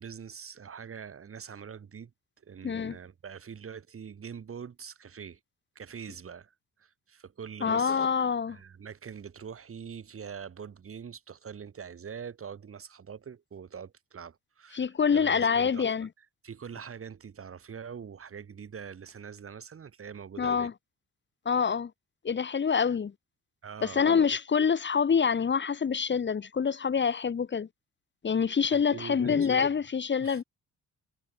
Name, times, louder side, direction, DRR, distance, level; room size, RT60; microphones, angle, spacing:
voice 1, 0.0-2.1 2.4-5.4 5.8-6.5 6.8-8.1 8.5-15.9 16.4-20.7 23.6-24.0 28.7-29.7 30.2-30.4, right 7 dB, 45° right, 5.8 m, -44 dB
voice 2, 2.6-3.0 7.6-8.6 14.7-16.1 20.4-20.7 21.5-21.9 22.2-23.1 23.8-27.7 28.2-30.4, left 6 dB, 40° left, 1.6 m, -26 dB
cardioid pair, 90°, 30 cm